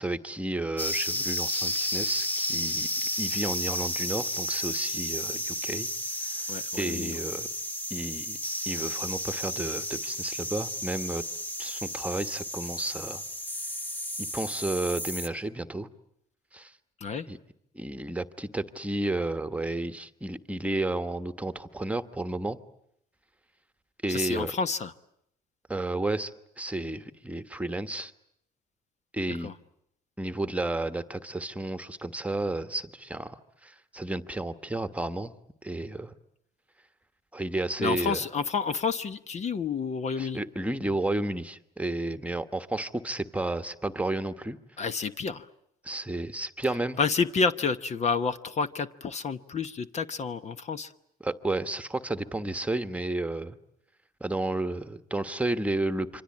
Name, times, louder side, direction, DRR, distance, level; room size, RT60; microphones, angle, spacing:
voice 1, 0.0-5.9 6.3-7.5 7.9-8.4 8.7-11.2 11.6-13.2 14.2-15.9 16.5-16.7 17.3-17.4 17.7-22.6 24.0-24.6 25.7-26.3 26.6-28.1 29.1-29.5 30.2-35.3 35.6-36.1 37.3-38.2 40.2-44.6 45.8-47.0 51.2-53.6 54.2-56.2, right 2 dB, 10° right, 10 dB, 1.3 m, -32 dB
sound 1, 0.8-15.3, left 1 dB, 10° left, 1.3 m, -32 dB
voice 2, 6.5-7.2 17.0-17.3 24.1-24.9 29.3-29.5 37.8-40.4 44.8-45.5 47.0-50.9, left 5 dB, 40° left, 11 dB, 1.1 m, -29 dB
27.0 x 25.0 x 8.6 m, 0.74 s
cardioid pair, 110°, 17 cm